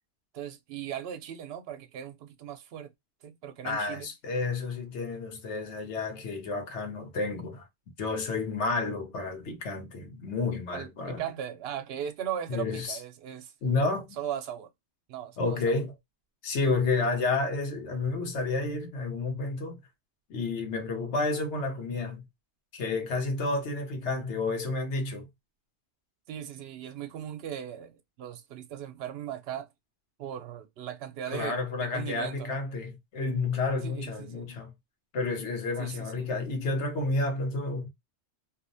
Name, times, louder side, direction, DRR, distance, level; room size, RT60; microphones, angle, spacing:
voice 1, 0.3-2.9 3.2-4.1 10.7-13.5 14.2-14.7 15.1-15.8 26.3-29.7 30.2-32.6 33.8-34.5 35.8-36.3, right 9 dB, 65° right, 0.8 m, -38 dB
voice 2, 3.6-7.7 8.0-11.2 12.5-13.0 13.6-14.2 15.4-15.9 16.4-19.8 20.3-22.3 22.7-25.3 31.3-34.7 35.1-37.9, left 3 dB, 80° left, 1.1 m, -30 dB
2.6 x 2.1 x 2.5 m
omnidirectional pair, 1.2 m